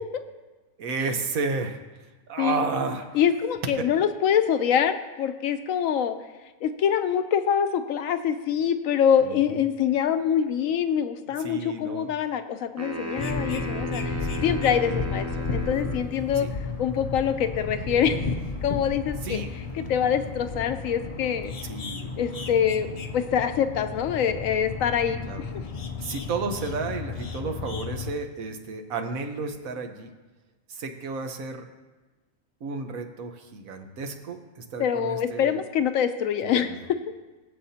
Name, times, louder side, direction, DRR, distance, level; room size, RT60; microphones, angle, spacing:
voice 1, 0.8-1.8 2.3-3.1 3.8-3.9 9.3-9.4 11.4-12.1 14.3-14.4 16.4-16.5 19.2-19.5 21.6-22.3 25.2-25.4 26.0-30.1 30.7-31.7 32.6-35.6 36.4-36.8, right 4 dB, 80° right, 5 dB, 1.4 m, -32 dB
voice 2, 3.1-6.1 6.6-16.5 16.8-18.3 18.6-19.4 19.7-21.5 22.2-25.2 34.8-37.0, left 8 dB, 75° left, 10 dB, 1.0 m, -25 dB
sound 1, 12.8-16.1, right 1 dB, 20° right, 0.5 m, -34 dB
sound 2, 13.2-28.1, left 4 dB, 50° left, 0.4 m, -33 dB
19.0 x 7.8 x 2.8 m, 1.2 s
omnidirectional pair, 1.4 m